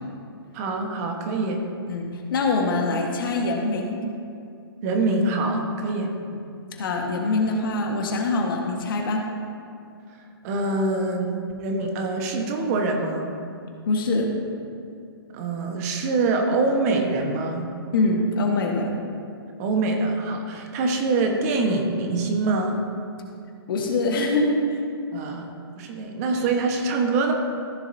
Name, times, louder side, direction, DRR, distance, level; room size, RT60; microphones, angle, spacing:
voice 1, 0.5-1.6 4.8-6.1 10.4-13.3 15.3-17.7 19.6-22.8 25.1-25.5 25.8-27.3, right 3 dB, 40° right, 3 dB, 1.3 m, -24 dB
voice 2, 1.9-4.0 6.3-6.4 6.7-9.2 13.9-14.3 17.9-18.9 23.7-24.8 26.0-26.1, left 2 dB, 60° left, 1 dB, 1.6 m, -24 dB
14.5 x 7.2 x 2.8 m, 2.4 s
hypercardioid pair, 135°, 13 cm